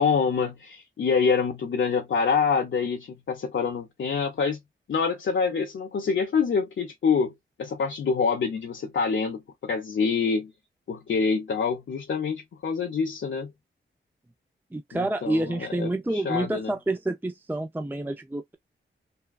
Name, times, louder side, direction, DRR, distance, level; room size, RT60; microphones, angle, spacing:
voice 1, 0.0-4.6 4.9-7.3 7.6-10.5 10.9-13.5 14.9-16.7, left 5 dB, 70° left, 0.6 m, -26 dB
voice 2, 14.7-18.5, right 2 dB, 10° right, 0.4 m, -28 dB
3.5 x 2.2 x 2.3 m
cardioid pair, 65°, 21 cm